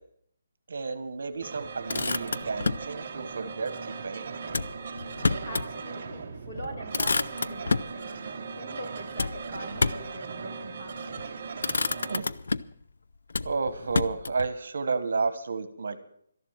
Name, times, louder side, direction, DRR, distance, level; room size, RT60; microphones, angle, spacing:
voice 1, 0.7-4.3 12.1-12.3 13.4-16.0, right 4 dB, 65° right, 12 dB, 1.2 m, -31 dB
sound 1, 1.4-12.2, right 5 dB, 35° right, 1.0 m, -39 dB
Motor vehicle (road), 1.6-2.9 4.5-5.7 6.1-6.2 6.6-8.0 9.2-10.2 11.0-11.3 11.6-12.8 13.3-14.5, left 4 dB, 75° left, 0.5 m, -29 dB
voice 2, 5.4-11.0, equal, 25° left, -1 dB, 4.6 m, -42 dB
13.0 x 11.0 x 7.4 m, 0.65 s
hypercardioid pair, 175°, 0 cm